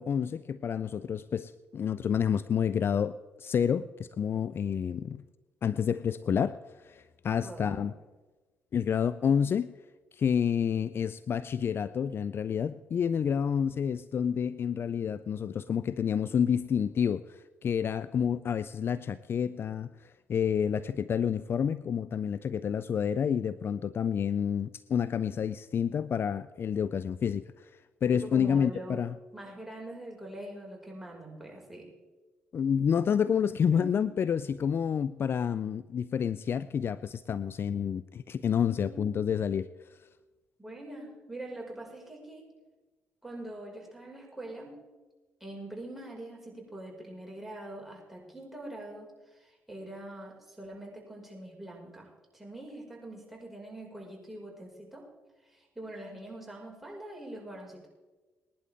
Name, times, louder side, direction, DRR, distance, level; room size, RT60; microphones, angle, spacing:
voice 1, 0.0-5.2 5.6-6.6 6.8-7.9 8.7-9.7 10.1-19.9 20.3-27.7 28.0-29.1 32.5-39.7, left 7 dB, 45° left, 0.4 m, -29 dB
voice 2, 7.4-7.9 28.1-29.0 29.3-31.9 33.7-34.1 38.7-39.2 40.6-42.5 43.2-44.8 45.4-55.1 55.5-57.9, right 1 dB, 5° right, 5.8 m, -44 dB
20.0 x 11.5 x 3.7 m
hypercardioid pair, 45°, 5 cm